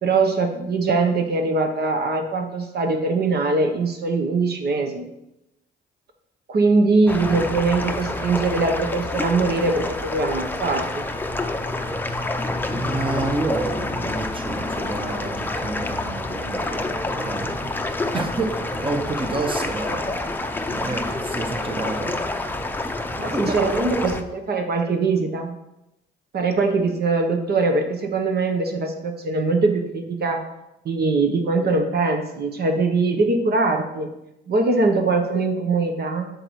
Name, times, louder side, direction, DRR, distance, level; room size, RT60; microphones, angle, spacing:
voice 1, 0.0-5.0 6.5-11.0 20.8-20.9 23.2-25.5 26.3-30.4 30.8-34.1 34.5-36.3, right 3 dB, 55° right, 4 dB, 1.0 m, -22 dB
sound 1, 7.1-24.2, left 2 dB, 10° left, 0.6 m, -28 dB
voice 2, 12.7-17.7 18.1-20.3 20.6-22.2 22.8-23.1 23.3-23.8, right 3 dB, 25° right, 5 dB, 1.0 m, -29 dB
7.6 x 6.9 x 3.2 m, 0.88 s
cardioid pair, 90°, 20 cm